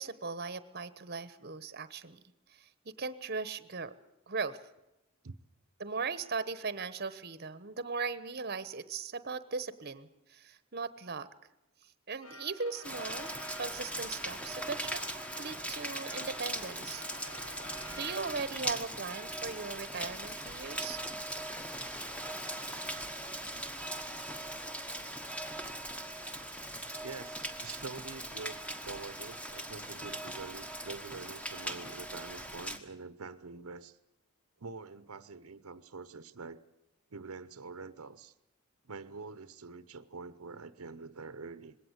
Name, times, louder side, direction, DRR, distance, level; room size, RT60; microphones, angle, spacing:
voice 1, 0.0-2.2 2.5-3.9 4.3-4.6 5.8-11.3 12.1-13.3 13.6-15.0 15.4-17.0 17.3-17.7 18.0-21.0, right 4 dB, 45° right, 15 dB, 1.0 m, -38 dB
sound 1, 12.2-18.8, left 2 dB, 85° left, 3.1 m, -51 dB
Rain, 12.8-32.8, right 1 dB, 5° left, 1.4 m, -40 dB
sound 2, 22.0-28.0, right 1 dB, 30° left, 6.2 m, -60 dB
voice 2, 27.0-28.6 28.8-34.0 34.6-36.6 37.1-38.3 38.9-41.8, right 4 dB, 80° right, 14 dB, 0.9 m, -45 dB
21.0 x 17.5 x 8.1 m, 0.93 s
head